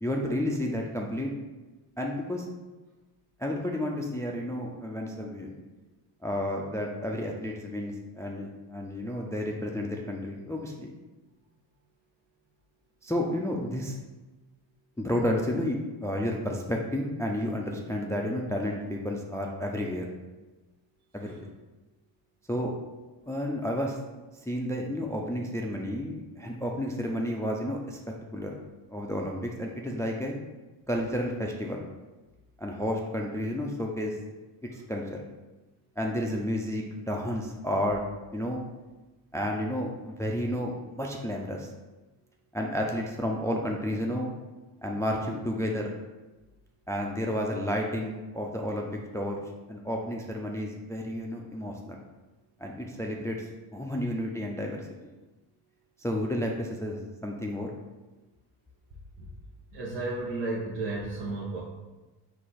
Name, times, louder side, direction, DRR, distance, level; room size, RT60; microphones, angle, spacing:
voice 1, 0.0-1.3 2.0-2.5 3.4-5.6 6.2-10.9 13.0-14.0 15.0-20.1 21.1-21.4 22.5-22.7 23.3-24.0 24.5-28.0 28.3-28.6 28.9-30.3 30.9-31.8 32.6-34.2 34.7-35.2 36.0-38.0 38.3-38.6 39.3-41.7 42.5-44.3 44.8-46.0 46.9-49.4 49.7-52.0 52.6-55.1 56.0-57.7, equal, 5° left, 0 dB, 0.4 m, -31 dB
voice 2, 59.7-61.6, right 2 dB, 80° right, -6 dB, 1.0 m, -34 dB
4.7 x 2.3 x 4.1 m, 1.1 s
supercardioid pair, 75°, 50 cm